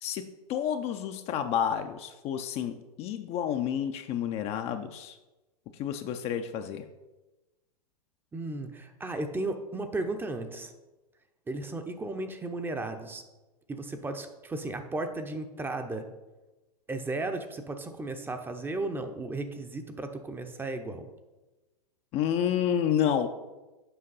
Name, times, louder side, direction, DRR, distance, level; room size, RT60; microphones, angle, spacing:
voice 1, 0.0-5.2 5.8-6.9 22.1-23.3, left 9 dB, 30° left, 7 dB, 0.4 m, -30 dB
voice 2, 8.3-10.7 11.5-13.2 13.7-16.1 16.9-21.1, right 2 dB, 10° right, 7 dB, 0.6 m, -35 dB
7.8 x 5.1 x 4.0 m, 1.1 s
hypercardioid pair, 110°, 20 cm